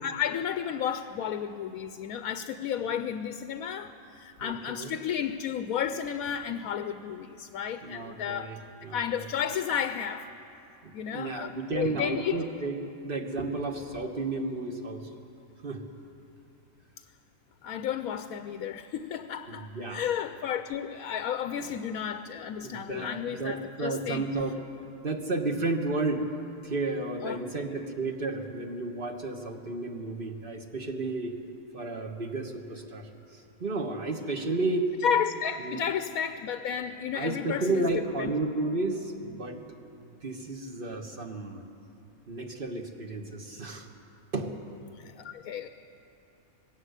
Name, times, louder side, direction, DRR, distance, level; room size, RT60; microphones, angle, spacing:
voice 1, 0.0-8.5 8.9-10.3 10.9-12.4 17.6-24.2 27.2-27.4 35.0-37.9 38.2-38.3 45.0-45.7, left 8 dB, 85° left, 9 dB, 1.1 m, -32 dB
voice 2, 4.4-4.9 7.8-9.2 10.8-15.1 15.6-15.8 19.5-20.1 21.6-21.7 22.6-24.6 25.0-26.3 26.6-31.4 31.7-34.9 35.6-35.9 37.1-39.8 40.2-41.6 42.3-43.9 44.3-44.6, right 2 dB, 40° right, 4 dB, 1.5 m, -32 dB
20.0 x 17.0 x 8.2 m, 2.9 s
omnidirectional pair, 1.5 m